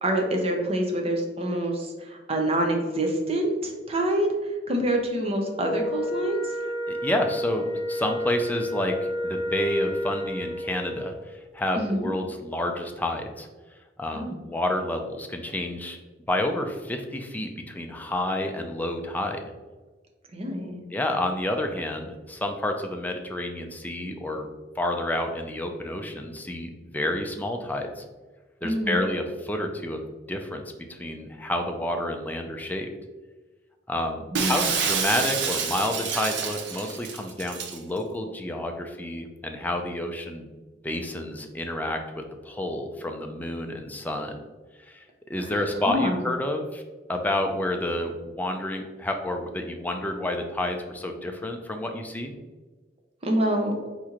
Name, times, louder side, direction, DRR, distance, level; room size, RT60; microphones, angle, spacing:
voice 1, 0.0-6.5 11.8-12.1 14.1-14.4 20.3-20.8 28.6-29.1 34.3-34.7 45.9-46.2 53.2-53.7, right 1 dB, 30° right, 2 dB, 0.7 m, -26 dB
Wind instrument woodwind instrument, 5.5-11.2, equal, 75° left, 0.6 m, -30 dB
voice 2, 6.9-7.6 7.9-13.5 14.0-16.0 16.3-19.4 20.9-24.5 24.8-28.0 28.6-32.9 33.9-40.5 40.8-44.4 44.9-46.8 47.1-52.4, left 1 dB, 10° left, 3 dB, 0.4 m, -29 dB
Shatter, 34.3-37.8, right 6 dB, 65° right, 0.6 m, -28 dB
4.2 x 3.0 x 3.7 m, 1.3 s
head